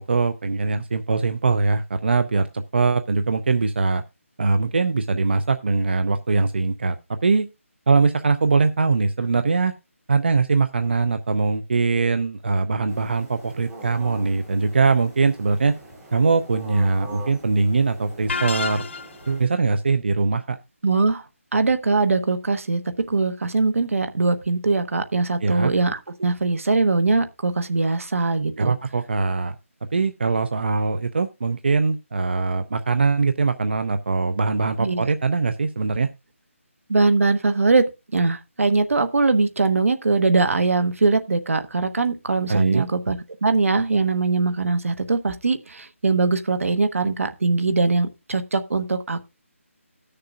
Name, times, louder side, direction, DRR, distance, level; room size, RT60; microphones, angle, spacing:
voice 1, 0.0-4.0 4.4-7.5 7.9-9.7 10.1-15.7 16.1-18.9 19.3-20.6 25.4-25.7 28.6-29.6 29.9-36.1 42.5-42.8, right 4 dB, 50° right, 0.5 m, -22 dB
sound 1, 12.9-19.5, right 1 dB, 5° right, 0.7 m, -42 dB
sound 2, 18.3-19.3, left 5 dB, 55° left, 0.8 m, -28 dB
voice 2, 20.8-21.2 21.5-22.8 23.1-28.7 34.8-35.1 36.9-49.2, right 3 dB, 75° right, 1.1 m, -21 dB
19.5 x 6.7 x 2.4 m
hypercardioid pair, 175°, 8 cm